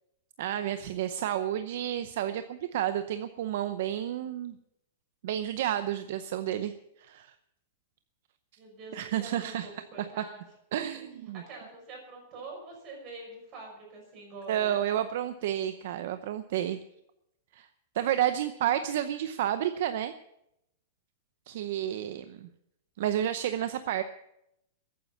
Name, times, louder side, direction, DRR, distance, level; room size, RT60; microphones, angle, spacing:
voice 1, 0.4-4.6 5.2-6.7 7.0-7.3 8.9-9.7 10.2-10.3 10.7-11.4 14.5-16.8 17.5-17.7 17.9-20.1 21.5-22.5 23.0-24.0, right 11 dB, 50° right, 11 dB, 0.7 m, -30 dB
voice 2, 8.6-10.5 11.3-14.8, right 3 dB, 25° right, -1 dB, 6.1 m, -45 dB
14.5 x 9.6 x 8.5 m, 0.81 s
supercardioid pair, 180°, 0 cm